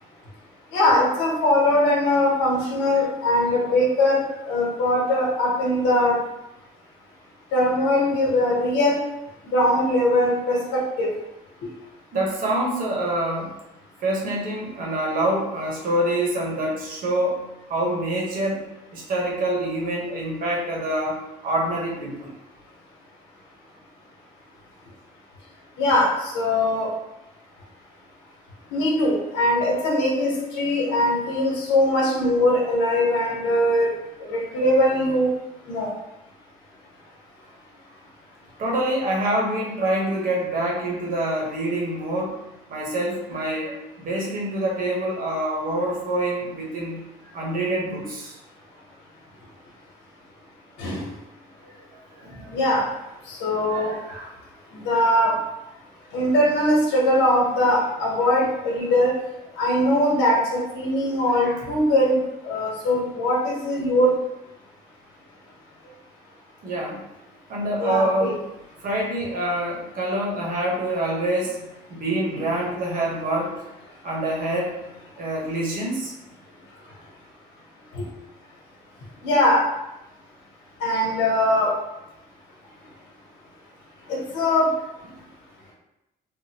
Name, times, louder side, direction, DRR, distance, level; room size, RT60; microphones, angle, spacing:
voice 1, 0.7-6.2 7.5-9.0 9.5-11.1 11.6-11.7 25.8-26.9 28.7-33.9 34.2-35.3 35.7-35.9 50.8-51.0 52.5-52.8 53.3-54.0 54.7-55.4 56.1-59.1 59.6-62.2 62.4-64.2 67.8-68.3 77.9-78.1 79.2-79.6 80.8-81.7 84.1-84.7, left 1 dB, 85° left, -3 dB, 1.0 m, -21 dB
voice 2, 12.1-13.5 14.0-17.4 17.7-18.6 18.9-22.3 38.6-42.4 42.7-47.1 47.3-48.4 51.6-52.6 53.7-54.3 61.3-61.6 66.6-67.0 67.5-68.4 68.8-73.6 74.0-74.8 75.2-76.1, right 1 dB, 55° right, -2 dB, 1.0 m, -26 dB
3.5 x 2.1 x 2.8 m, 0.91 s
cardioid pair, 110°, 17 cm